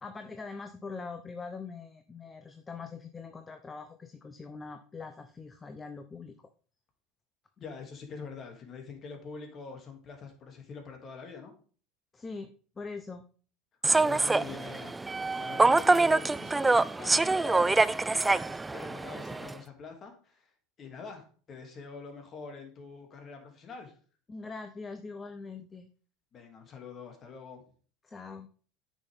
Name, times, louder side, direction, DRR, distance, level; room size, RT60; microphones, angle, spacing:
voice 1, 0.0-6.5 12.1-13.2 24.3-25.9 28.0-28.5, left 4 dB, 20° left, 8 dB, 0.8 m, -43 dB
voice 2, 7.6-11.5 14.0-15.0 15.4-20.5 20.8-23.9 26.3-27.6, left 4 dB, 40° left, 3 dB, 2.6 m, -45 dB
Human voice / Subway metro underground, 13.8-19.5, right 3 dB, 15° right, 0.3 m, -25 dB
9.6 x 6.2 x 3.6 m, 0.42 s
hypercardioid pair, 85°, 0 cm